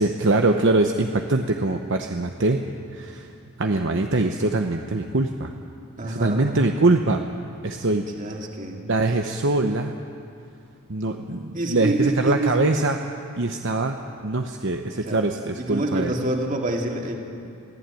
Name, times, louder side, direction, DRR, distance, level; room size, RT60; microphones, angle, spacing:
voice 1, 0.0-2.6 2.9-3.3 3.6-5.5 6.0-7.2 7.6-8.1 8.9-9.9 10.9-13.1 13.4-16.1, right 2 dB, 60° right, 4 dB, 0.9 m, -23 dB
voice 2, 6.0-6.6 8.1-8.8 11.5-12.6 15.0-15.2 15.6-17.2, right 1 dB, 35° right, 1 dB, 2.6 m, -27 dB
23.0 x 16.0 x 9.1 m, 2.5 s
head